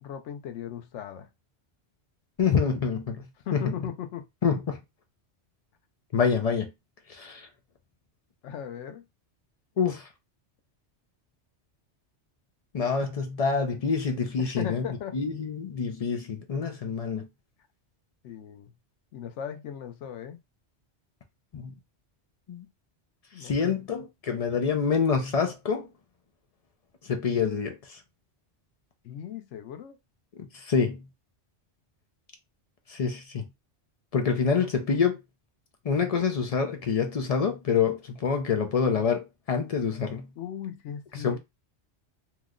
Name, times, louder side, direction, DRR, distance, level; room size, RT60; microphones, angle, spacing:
voice 1, 0.0-1.3 3.4-4.3 8.4-9.0 14.4-15.2 18.2-18.7 19.1-20.4 23.3-23.6 29.0-30.0 40.4-41.4, left 9 dB, 85° left, 0.9 m, -37 dB
voice 2, 2.4-3.7 4.4-4.8 6.1-6.7 7.1-7.5 9.8-10.1 12.7-14.8 15.1-17.3 21.5-21.7 22.5-22.7 23.4-25.9 27.1-28.0 30.4-31.0 32.9-33.4 34.1-35.2 35.8-40.3 41.2-41.4, left 6 dB, 50° left, 0.4 m, -27 dB
3.0 x 2.1 x 3.6 m
omnidirectional pair, 1.2 m